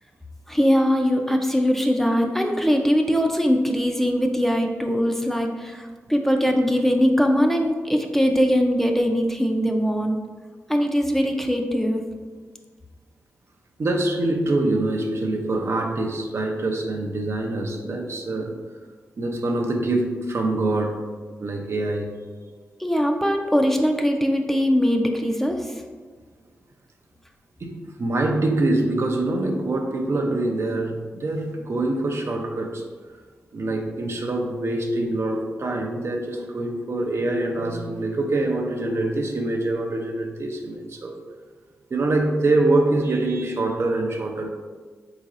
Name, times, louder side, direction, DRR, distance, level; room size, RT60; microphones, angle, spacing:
voice 1, 0.5-10.2 10.7-12.0 22.8-25.8, equal, 5° left, 3 dB, 0.5 m, -21 dB
voice 2, 13.8-18.8 19.2-21.0 21.4-22.1 27.6-33.2 33.5-41.2 41.9-44.5, right 2 dB, 55° right, 2 dB, 0.5 m, -25 dB
4.0 x 3.8 x 2.5 m, 1.4 s
cardioid pair, 45°, 5 cm